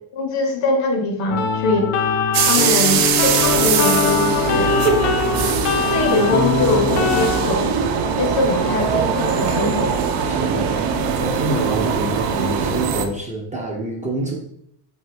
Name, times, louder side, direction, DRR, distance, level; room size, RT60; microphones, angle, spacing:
voice 1, 0.1-1.9 2.4-4.8 5.9-7.7 8.2-10.0, left 2 dB, 60° left, 3 dB, 0.9 m, -22 dB
sound 1, 1.3-7.5, left 6 dB, 80° left, 0.6 m, -22 dB
sound 2, 2.3-13.0, right 6 dB, 80° right, 0.6 m, -21 dB
voice 2, 10.3-10.8 11.2-14.3, right 1 dB, 15° right, -3 dB, 0.4 m, -26 dB
2.8 x 2.5 x 3.2 m, 0.72 s
supercardioid pair, 105°, 50 cm